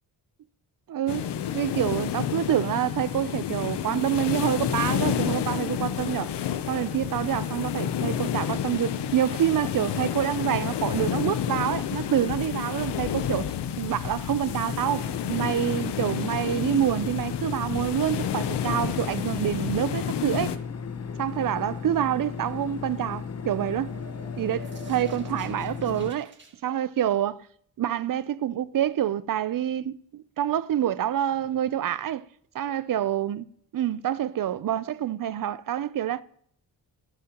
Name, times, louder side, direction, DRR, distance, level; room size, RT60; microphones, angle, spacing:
voice 1, 0.9-6.3 6.7-20.6 21.2-23.9 24.4-26.3 26.6-27.5 27.8-32.2 32.5-33.4 33.7-36.2, right 11 dB, 55° right, 0.6 m, -27 dB
sound 1, 1.1-20.6, left 9 dB, 90° left, 0.8 m, -30 dB
sound 2, 14.4-26.1, left 6 dB, 40° left, 0.9 m, -36 dB
sound 3, 23.3-26.5, right 2 dB, 30° right, 1.6 m, -48 dB
13.0 x 12.0 x 3.0 m
wide cardioid pair, 120°, 40 cm